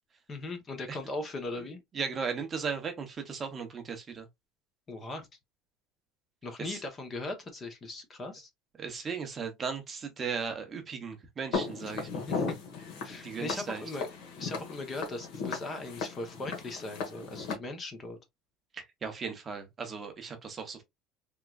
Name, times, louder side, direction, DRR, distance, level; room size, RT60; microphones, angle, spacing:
voice 1, 0.3-1.8 4.9-5.3 6.4-8.5 12.3-12.6 13.0-14.1 14.4-18.2, left 2 dB, 20° left, 0.8 m, -39 dB
voice 2, 1.9-4.3 6.6-6.8 8.8-12.3 13.2-13.8 18.7-20.8, right 5 dB, 20° right, 0.7 m, -37 dB
Walk footsteps, 11.5-17.5, left 5 dB, 65° left, 1.3 m, -37 dB
3.6 x 3.0 x 2.3 m
cardioid pair, 165°, 0 cm